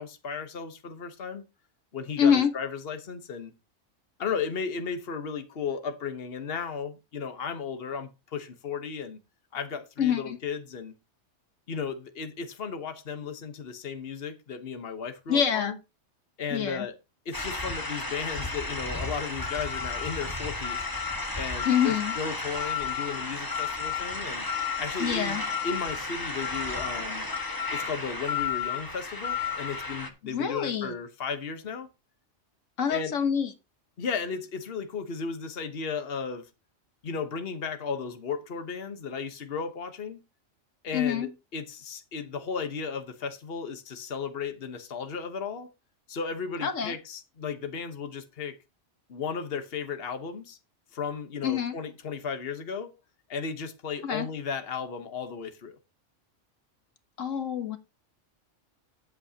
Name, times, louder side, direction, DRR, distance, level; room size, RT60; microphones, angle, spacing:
voice 1, 0.0-1.4 1.9-3.5 4.2-9.2 9.5-10.9 11.7-15.8 16.4-17.0 17.2-20.9 21.4-24.4 24.8-25.4 25.6-27.3 27.7-31.9 32.9-33.1 34.0-36.5 37.0-40.2 40.8-45.7 46.1-48.5 49.1-50.6 50.9-52.9 53.3-55.8, left 5 dB, 50° left, 1.3 m, -35 dB
voice 2, 2.2-2.5 10.0-10.4 15.3-15.7 16.5-16.9 21.6-22.1 25.0-25.4 30.2-30.9 32.8-33.5 40.9-41.3 46.6-46.9 51.4-51.7 54.0-54.3 57.2-57.8, left 8 dB, 85° left, 1.6 m, -26 dB
sound 1, 17.3-30.1, left 4 dB, 15° left, 1.3 m, -32 dB
13.0 x 8.9 x 2.9 m
omnidirectional pair, 1.3 m